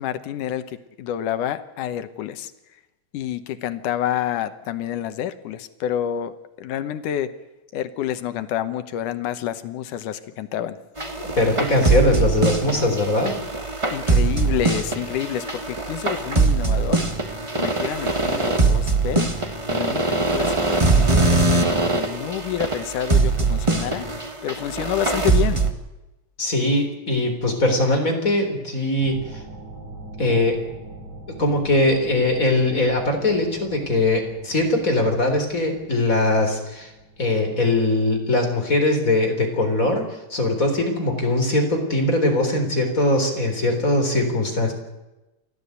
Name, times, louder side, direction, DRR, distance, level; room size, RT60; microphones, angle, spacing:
voice 1, 0.0-2.5 3.1-7.3 7.7-10.8 13.9-24.1 24.4-25.6, left 11 dB, 85° left, 11 dB, 2.6 m, -28 dB
sound 1, 11.0-25.7, right 3 dB, 25° right, 0.7 m, -22 dB
voice 2, 11.2-13.4 26.4-29.4 30.2-30.6 31.3-36.9 37.2-44.7, left 2 dB, 25° left, 4 dB, 4.0 m, -21 dB
sound 2, 29.0-38.1, right 2 dB, 85° right, 7.7 m, -43 dB
29.0 x 13.0 x 8.2 m, 1.0 s
omnidirectional pair, 3.5 m